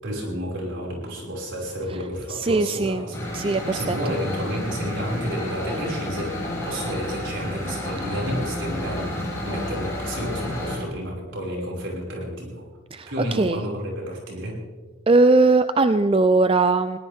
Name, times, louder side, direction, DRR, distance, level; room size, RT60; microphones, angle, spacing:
voice 1, 0.0-12.6 13.1-14.5, equal, 65° right, -2 dB, 5.8 m, -31 dB
voice 2, 2.3-3.1 3.3-4.0 12.9-13.6 15.1-17.0, right 3 dB, 30° right, 11 dB, 0.4 m, -20 dB
sound 1, 3.1-10.8, left 1 dB, 15° left, 6.8 m, -31 dB
20.5 x 18.5 x 3.6 m, 1.4 s
head